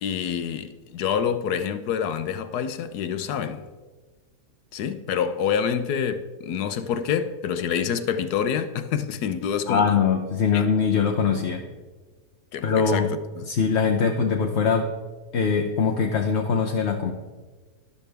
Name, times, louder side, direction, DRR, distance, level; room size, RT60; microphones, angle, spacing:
voice 1, 0.0-3.7 4.7-9.8 10.5-10.7 12.5-13.1 13.4-13.5, left 7 dB, 75° left, 1.2 m, -27 dB
voice 2, 9.7-11.6 12.6-13.1 13.4-14.9 15.3-17.1, left 6 dB, 50° left, 0.9 m, -22 dB
12.5 x 12.0 x 3.4 m
omnidirectional pair, 1.7 m